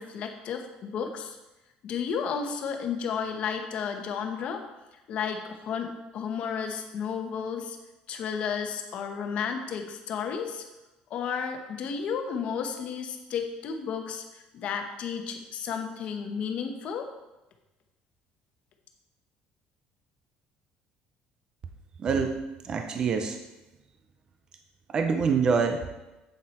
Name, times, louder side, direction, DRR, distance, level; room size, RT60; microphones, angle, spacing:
voice 1, 0.0-1.4 1.8-4.6 5.1-7.8 8.1-10.6 11.1-17.1, left 6 dB, 45° left, 5 dB, 1.0 m, -32 dB
voice 2, 22.0-23.4 24.9-26.0, right 5 dB, 30° right, 5 dB, 0.5 m, -26 dB
8.2 x 7.4 x 4.2 m, 1.0 s
cardioid pair, 175°, 3 cm